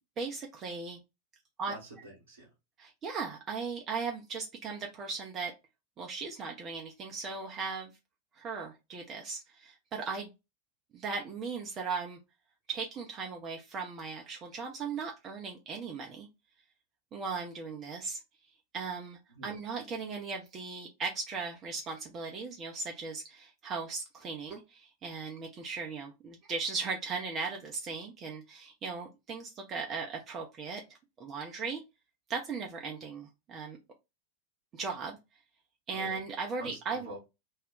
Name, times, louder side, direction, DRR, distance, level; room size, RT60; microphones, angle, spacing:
voice 1, 0.2-1.0 1.6-1.7 2.8-5.5 6.0-7.9 8.4-10.3 10.9-12.2 12.7-16.3 17.1-18.2 18.7-30.8 31.2-31.8 32.3-33.8 34.7-35.2 35.9-37.1, right 4 dB, 30° right, 0.5 m, -37 dB
voice 2, 1.7-2.5 19.4-19.5 35.9-36.1 36.5-37.2, right 2 dB, 75° right, 0.9 m, -46 dB
2.4 x 2.1 x 3.6 m
figure-of-eight pair, 90°, 0 cm